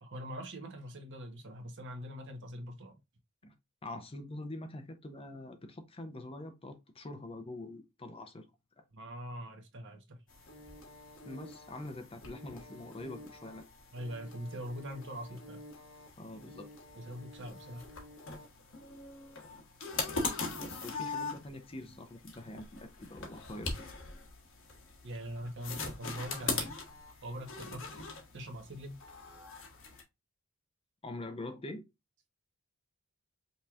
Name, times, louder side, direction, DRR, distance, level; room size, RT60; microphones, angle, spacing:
voice 1, 0.0-3.0 8.9-10.2 13.9-15.6 16.9-17.9 25.0-26.7 27.2-27.9 28.3-29.0, equal, 55° right, 1.1 m, -42 dB
voice 2, 3.8-8.5 8.8-8.9 11.2-13.6 16.2-16.7 20.5-23.8 31.0-31.8, left 2 dB, 25° left, 0.6 m, -44 dB
sound 1, 10.3-30.0, left 4 dB, 60° left, 1.3 m, -42 dB
5.3 x 3.0 x 2.4 m
head